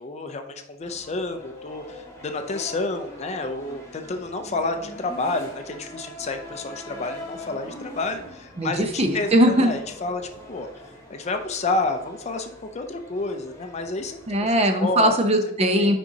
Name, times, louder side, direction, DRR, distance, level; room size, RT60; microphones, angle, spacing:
voice 1, 0.0-10.7 11.1-14.5 14.8-15.2 15.8-16.0, left 2 dB, 35° left, 7 dB, 0.5 m, -30 dB
sound 1, 0.8-15.1, left 1 dB, 15° left, 1.8 m, -43 dB
voice 2, 8.6-9.8 14.3-16.0, equal, 35° right, 6 dB, 0.7 m, -20 dB
7.3 x 5.2 x 2.8 m, 0.79 s
head